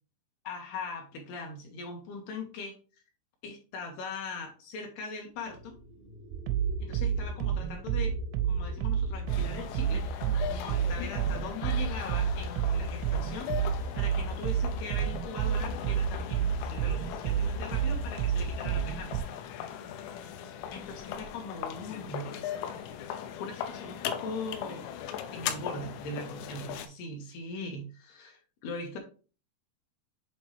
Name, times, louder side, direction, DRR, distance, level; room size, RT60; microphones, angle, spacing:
voice 1, 0.4-2.8 3.4-5.7 6.8-8.2 8.5-10.0 10.5-19.2 20.7-22.4 23.4-24.9 25.3-29.0, left 3 dB, 70° left, 2 dB, 2.7 m, -40 dB
sound 1, 5.3-10.2, right 3 dB, 30° left, 0.7 m, -49 dB
sound 2, 6.3-19.2, right 8 dB, 85° right, 3.1 m, -30 dB
sound 3, 9.3-26.9, left 9 dB, 90° left, 3.1 m, -39 dB
7.7 x 4.3 x 3.2 m, 0.36 s
omnidirectional pair, 5.2 m